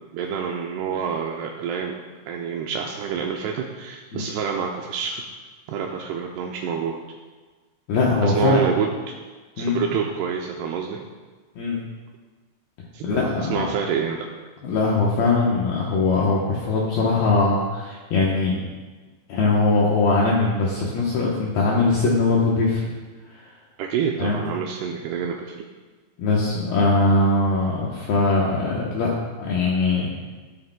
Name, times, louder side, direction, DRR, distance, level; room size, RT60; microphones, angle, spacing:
voice 1, 0.1-2.0 2.3-5.2 5.7-7.0 8.2-8.9 9.6-11.0 12.9-14.3 23.8-25.6, right 7 dB, 85° right, 0 dB, 2.3 m, -27 dB
voice 2, 7.9-8.6 9.6-9.8 11.6-11.8 13.0-13.7 14.6-18.6 19.3-22.8 24.2-24.4 26.2-29.1 29.4-30.1, left 3 dB, 70° left, -4 dB, 2.5 m, -21 dB
12.5 x 12.0 x 2.2 m, 1.3 s
omnidirectional pair, 5.5 m